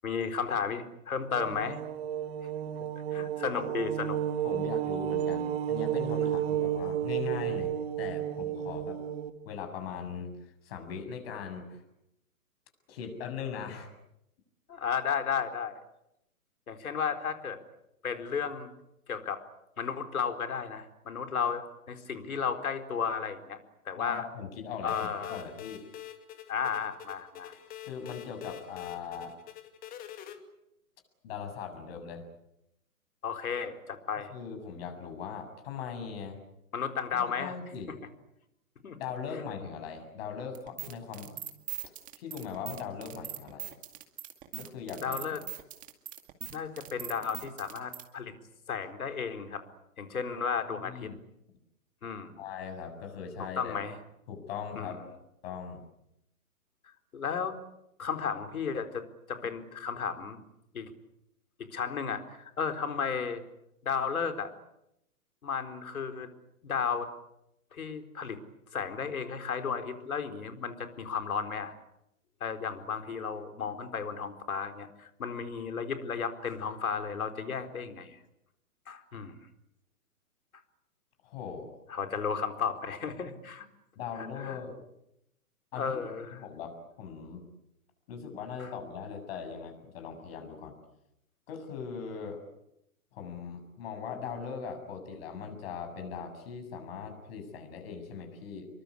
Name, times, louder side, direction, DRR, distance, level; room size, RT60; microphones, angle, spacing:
voice 1, 0.0-1.8 3.1-4.2 14.7-15.8 16.7-17.6 18.0-18.7 19.1-19.4 19.8-23.6 23.9-24.2 24.8-25.4 26.5-27.6 33.2-34.3 36.7-37.6 38.8-39.0 45.0-45.4 46.5-48.4 48.7-49.6 50.0-51.1 52.0-52.4 53.6-54.0 54.8-55.0 57.1-57.6 58.0-60.4 60.7-60.9 61.6-63.4 63.8-64.5 65.4-66.3 66.6-67.1 67.7-68.4 68.7-71.7 72.4-78.2 78.9-79.4 81.9-83.7 84.2-84.6 85.7-86.4 88.6-88.7, left 6 dB, 70° left, 7 dB, 4.3 m, -33 dB
sound 1, 1.3-9.3, right 10 dB, 45° right, 2.2 m, -32 dB
voice 2, 4.4-9.0 9.5-11.8 12.9-13.9 24.0-25.8 27.9-29.4 31.2-32.2 34.1-36.4 37.4-37.9 39.0-41.3 42.2-43.7 44.6-45.2 50.7-51.2 52.4-53.8 54.3-55.0 55.4-55.8 81.2-81.7 84.0-84.8 85.7-86.0 86.4-87.4 88.1-90.7 91.5-92.4 93.1-98.7, left 6 dB, 40° left, 6 dB, 7.4 m, -40 dB
sound 2, 24.9-30.4, left 11 dB, 20° left, 2.3 m, -45 dB
sound 3, 40.5-48.0, right 11 dB, 15° right, 2.2 m, -41 dB
27.5 x 23.5 x 8.5 m, 0.82 s
hypercardioid pair, 135°, 45 cm